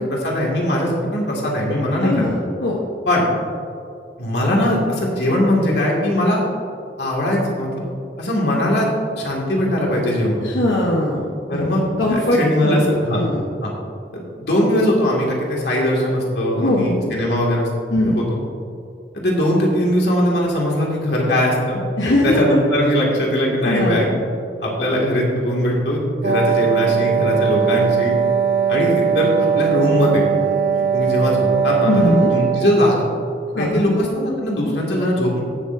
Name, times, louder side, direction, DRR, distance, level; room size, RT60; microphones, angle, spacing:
voice 1, 0.0-2.3 3.1-3.2 4.2-6.4 7.0-7.7 8.2-8.9 9.2-10.4 11.5-11.8 12.1-13.2 13.6-13.7 14.4-17.7 18.0-18.2 19.1-21.8 22.0-24.1 24.6-28.1 28.7-30.2 30.7-33.0 33.6-35.4, left 1 dB, 70° left, -3 dB, 2.2 m, -20 dB
voice 2, 2.0-2.8 10.4-11.2 11.5-12.8 13.1-13.4 16.6-17.2 17.9-18.2 22.0-22.6 23.6-24.0 31.8-32.3 33.5-34.0, left 1 dB, 90° left, -4 dB, 1.2 m, -20 dB
Wind instrument woodwind instrument, 26.2-33.0, right 7 dB, 85° right, 0.7 m, -19 dB
18.5 x 6.5 x 2.7 m, 2.4 s
head